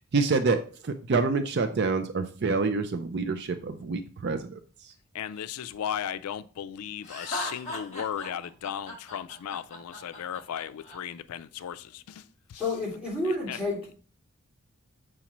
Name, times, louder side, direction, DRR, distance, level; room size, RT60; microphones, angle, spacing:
voice 1, 0.1-4.6, right 4 dB, 50° right, 0.4 m, -27 dB
voice 2, 5.1-12.6 13.5-13.6, left 9 dB, 90° left, 0.4 m, -36 dB
Laughter, 7.0-11.0, left 1 dB, 30° left, 1.5 m, -38 dB
voice 3, 12.5-13.9, left 2 dB, 5° right, 2.8 m, -30 dB
7.1 x 4.9 x 3.0 m
head